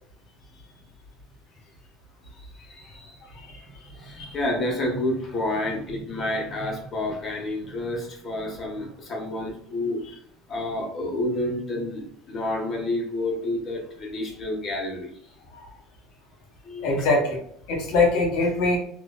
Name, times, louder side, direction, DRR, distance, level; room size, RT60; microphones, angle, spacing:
voice 1, 2.3-10.0 10.5-15.3 16.6-17.1, left 1 dB, 35° left, -1 dB, 1.1 m, -30 dB
voice 2, 16.8-17.4 17.7-18.8, left 3 dB, 70° left, -1 dB, 1.1 m, -22 dB
3.1 x 2.3 x 2.3 m, 0.64 s
supercardioid pair, 85°, 0 cm